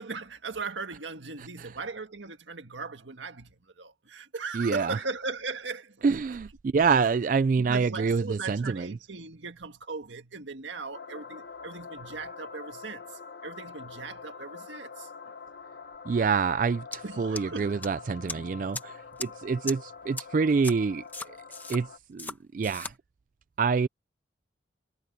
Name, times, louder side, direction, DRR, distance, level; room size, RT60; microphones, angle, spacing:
voice 1, 0.0-6.4 7.0-7.1 7.6-15.3 17.0-17.8 18.4-18.5 19.2-19.3, right 4 dB, 85° right, 1.7 m, -38 dB
voice 2, 4.5-5.0 6.0-8.9 16.1-21.3 21.7-22.9 23.6-23.9, right 5 dB, 45° right, 0.3 m, -27 dB
sound 1, 10.9-22.0, left 5 dB, 60° left, 1.1 m, -45 dB
sound 2, 16.9-17.0 17.4-17.9 18.3-18.4 18.7-18.8 19.2-19.3 19.7-19.8 20.2-20.3 20.6-20.7 21.1-21.8 22.2-22.3 22.6-22.9, left 3 dB, 10° left, 1.2 m, -36 dB
head